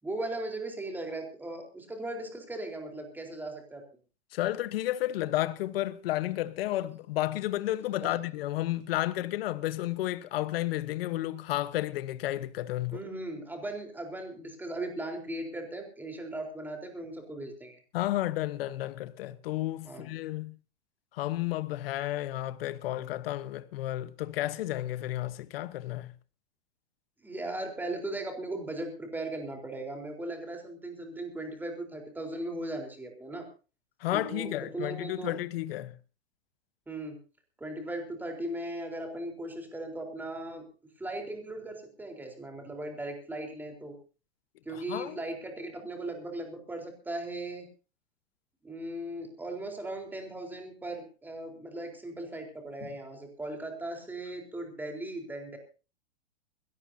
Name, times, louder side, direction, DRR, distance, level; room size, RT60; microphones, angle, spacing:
voice 1, 0.0-3.8 8.1-8.2 12.9-17.8 19.8-20.1 27.2-33.5 34.1-35.3 36.9-37.2 37.6-40.7 41.0-43.9 44.6-47.7 48.6-55.6, right 1 dB, 5° right, 4.0 m, -38 dB
voice 2, 4.3-13.0 17.9-20.5 21.1-26.1 34.0-35.9 44.7-45.2, left 15 dB, 60° left, 1.2 m, -32 dB
21.0 x 17.5 x 2.8 m
supercardioid pair, 155°, 33 cm